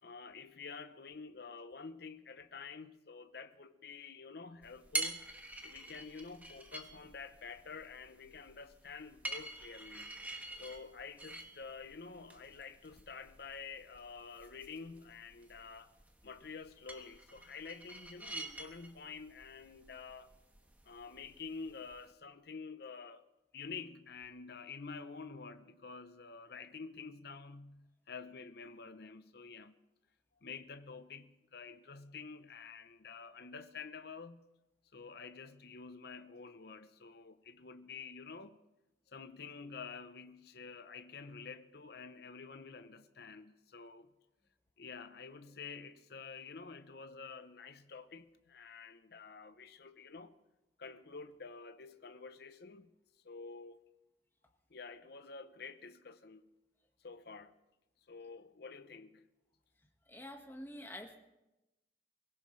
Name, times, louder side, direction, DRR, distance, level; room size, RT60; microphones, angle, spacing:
voice 1, 0.0-5.3 5.6-10.2 10.6-15.9 16.2-20.3 20.8-23.2 23.5-29.8 30.4-34.5 34.9-38.6 39.1-44.1 44.8-50.4 50.8-53.0 53.2-53.8 54.7-56.5 57.0-57.6 58.1-59.3, left 5 dB, 60° left, 0.7 m, -49 dB
sound 1, 4.6-22.1, right 2 dB, 10° right, 1.2 m, -47 dB
voice 2, 60.1-61.2, left 1 dB, 10° left, 1.5 m, -47 dB
23.5 x 16.5 x 3.2 m
head